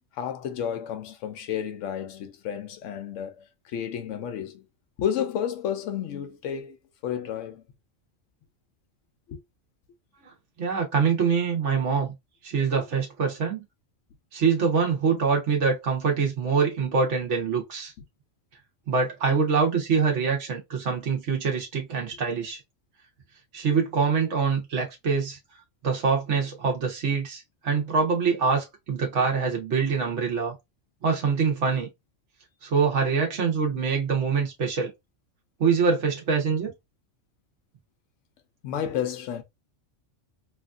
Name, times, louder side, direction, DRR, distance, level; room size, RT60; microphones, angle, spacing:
voice 1, 0.1-4.6 5.0-7.6 9.3-9.4 38.6-39.4, left 9 dB, 90° left, 0.9 m, -31 dB
voice 2, 10.6-12.1 12.4-13.6 14.3-17.9 18.9-22.6 23.5-25.4 25.8-30.5 31.0-31.9 32.6-34.9 35.6-36.7, right 5 dB, 75° right, 1.3 m, -24 dB
3.0 x 2.5 x 2.3 m
omnidirectional pair, 1.2 m